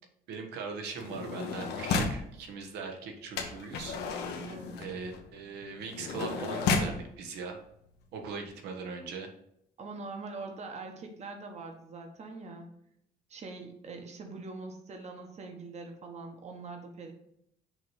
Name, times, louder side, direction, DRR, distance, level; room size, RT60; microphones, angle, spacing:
voice 1, 0.3-4.0 4.8-7.6 8.1-9.3, right 4 dB, 80° right, 2 dB, 1.2 m, -40 dB
sound 1, 1.0-2.3 3.4-7.0 7.8-7.9 8.2-8.5, left 4 dB, 80° left, 1.0 m, -33 dB
voice 2, 4.5-4.8 9.8-12.7 13.3-17.1, right 3 dB, 40° right, 4 dB, 1.2 m, -43 dB
6.1 x 3.0 x 5.5 m, 0.75 s
cardioid pair, 110°, 17 cm